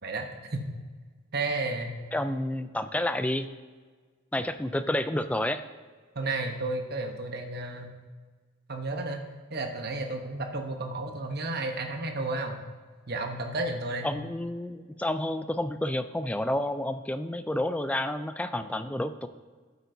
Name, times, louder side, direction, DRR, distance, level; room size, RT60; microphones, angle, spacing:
voice 1, 0.0-0.6 1.3-1.9 6.1-7.9 8.7-9.2 9.5-12.6 13.1-14.1, right 2 dB, 50° right, 4 dB, 1.0 m, -32 dB
voice 2, 2.1-3.5 4.3-5.6 14.0-19.3, left 1 dB, 5° left, 11 dB, 0.3 m, -30 dB
12.0 x 8.2 x 2.7 m, 1.5 s
head